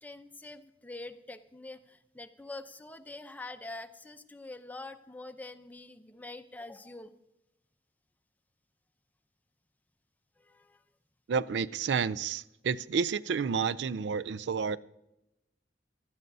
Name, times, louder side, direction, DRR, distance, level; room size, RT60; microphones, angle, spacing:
voice 1, 0.0-7.1 10.4-10.8, left 2 dB, 10° left, 0.6 m, -45 dB
voice 2, 11.3-14.8, right 6 dB, 75° right, 0.4 m, -30 dB
17.0 x 12.5 x 2.7 m
head